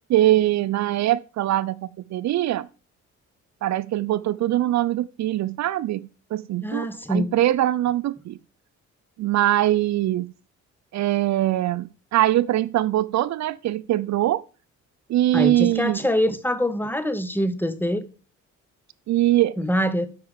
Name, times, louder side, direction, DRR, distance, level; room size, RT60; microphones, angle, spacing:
voice 1, 0.1-2.7 3.6-8.4 9.2-10.3 10.9-14.4 15.1-16.0 19.1-19.5, right 14 dB, 65° right, 0.5 m, -22 dB
voice 2, 6.6-7.3 15.3-18.0 19.6-20.1, equal, 5° left, 1.2 m, -24 dB
8.6 x 5.8 x 7.2 m
cardioid pair, 90°, 30 cm